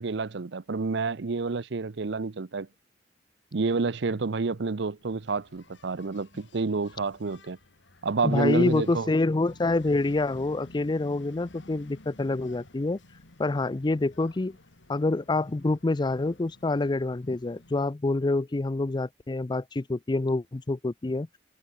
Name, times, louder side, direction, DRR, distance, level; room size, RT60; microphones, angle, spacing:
voice 1, 0.0-2.7 3.5-7.6 8.0-9.1, right 4 dB, 70° right, 0.7 m, -29 dB
Engine, 5.0-18.0, left 2 dB, 75° left, 2.6 m, -53 dB
voice 2, 8.2-13.0 13.4-14.6 14.9-21.3, left 2 dB, 25° left, 0.5 m, -27 dB
head